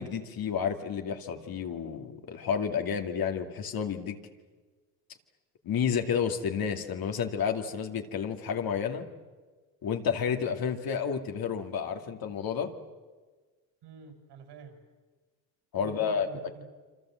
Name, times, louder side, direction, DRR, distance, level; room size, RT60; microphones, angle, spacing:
voice 1, 0.0-4.2 5.6-9.1 9.8-12.7 15.7-16.3, left 7 dB, 50° left, 4 dB, 2.5 m, -30 dB
voice 2, 13.8-14.8 15.7-16.6, right 5 dB, 65° right, 5 dB, 6.3 m, -48 dB
28.0 x 25.5 x 7.7 m, 1.4 s
cardioid pair, 100°, 45 cm